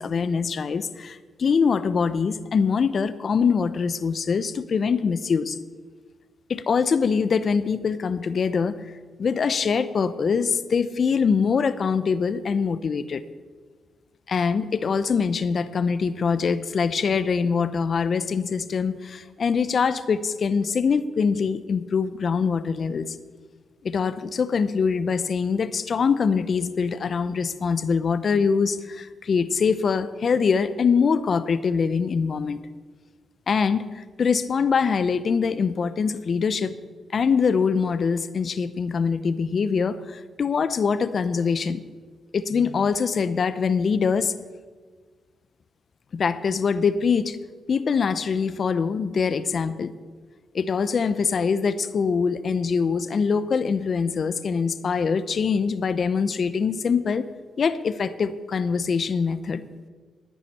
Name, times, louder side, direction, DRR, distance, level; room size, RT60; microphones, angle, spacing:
voice 1, 0.0-5.6 6.5-8.8 9.2-13.2 14.3-23.2 23.8-32.6 33.5-36.7 37.1-41.8 42.3-44.3 46.1-47.4 47.7-49.9 50.5-57.3 57.6-59.6, left 5 dB, 55° left, 15 dB, 0.6 m, -23 dB
15.0 x 9.9 x 4.3 m, 1.5 s
cardioid pair, 70°, 0 cm